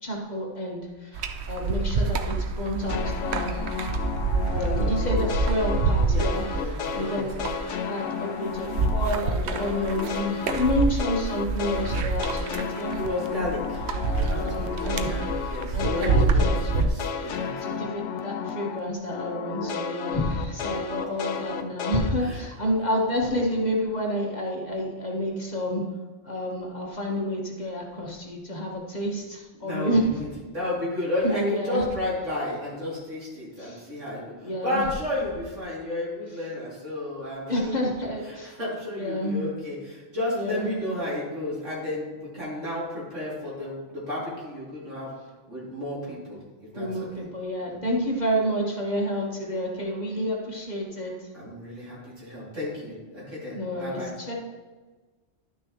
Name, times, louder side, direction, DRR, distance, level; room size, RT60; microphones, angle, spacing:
voice 1, 0.0-3.8 4.8-7.3 7.8-13.0 14.4-15.4 15.7-16.6 17.0-17.2 17.6-25.8 26.2-30.2 31.2-31.8 33.6-33.8 34.4-34.8 37.5-38.6 39.0-39.4 40.4-40.6 46.7-51.3 53.5-54.3, equal, 40° left, -1 dB, 1.3 m, -29 dB
sound 1, 1.1-16.9, right 3 dB, 65° right, 0.9 m, -27 dB
sound 2, 2.9-9.2 9.5-18.8 19.1-22.1, left 6 dB, 75° left, 1.0 m, -33 dB
voice 2, 4.4-5.1 6.1-7.4 12.9-13.8 14.1-17.8 21.2-21.3 22.2-22.4 29.6-45.1 45.5-47.2 47.6-47.8 51.3-54.1, left 1 dB, 85° right, -7 dB, 3.3 m, -32 dB
11.0 x 6.2 x 3.0 m, 1.3 s
omnidirectional pair, 1.2 m